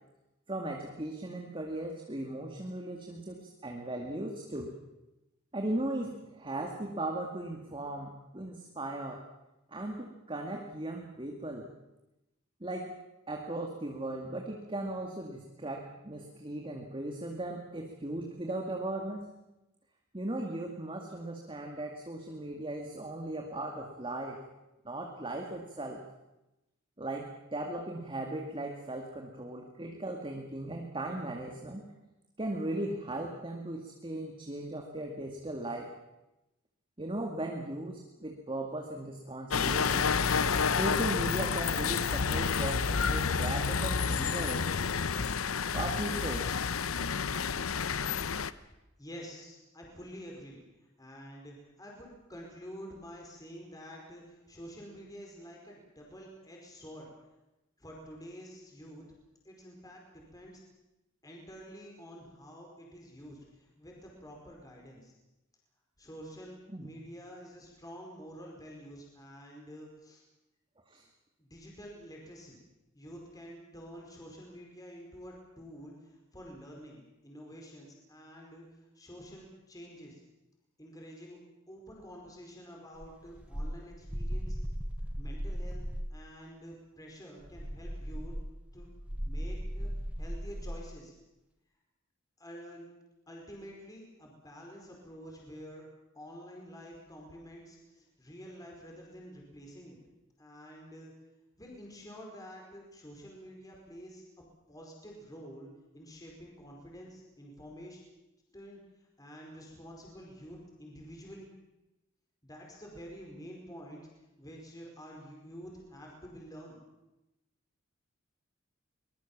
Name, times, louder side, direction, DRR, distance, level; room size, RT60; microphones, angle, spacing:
voice 1, 0.5-4.7 5.5-9.2 9.7-11.7 12.6-12.9 13.3-19.2 20.1-24.4 24.8-26.0 27.0-31.8 32.4-35.9 37.0-40.1 40.7-44.7 45.7-46.5 66.7-66.9 70.9-71.0, right 1 dB, 25° right, 1 dB, 2.1 m, -37 dB
sound 1, 39.5-48.5, left 6 dB, 80° left, 0.8 m, -30 dB
voice 2, 49.0-50.6 51.0-57.1 57.8-59.0 59.4-60.6 61.2-65.1 66.0-70.2 71.4-72.6 72.9-80.2 80.8-81.4 81.7-84.6 85.2-85.8 86.1-88.4 88.7-88.9 89.2-89.9 90.2-91.1 92.4-92.9 93.3-95.8 96.1-100.0 100.4-101.1 101.6-104.2 104.7-105.7 105.9-108.0 108.5-108.8 109.2-111.5 112.4-114.1 114.4-116.8, equal, 15° left, -1 dB, 4.9 m, -48 dB
sound 2, 83.0-86.2 87.4-90.9, equal, 5° right, 0.8 m, -37 dB
23.5 x 20.5 x 7.3 m, 0.96 s
head